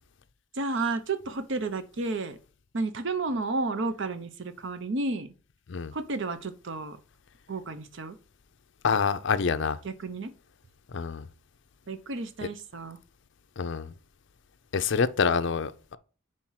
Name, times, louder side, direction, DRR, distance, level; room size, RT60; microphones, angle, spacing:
voice 1, 0.5-2.4 2.7-5.3 5.9-7.0 7.5-8.2 9.8-10.3 11.9-13.0, right 3 dB, 60° right, 0.7 m, -32 dB
voice 2, 8.8-9.8 10.9-11.2 13.6-13.9 14.7-16.0, left 5 dB, 55° left, 0.5 m, -26 dB
4.6 x 4.5 x 5.6 m
head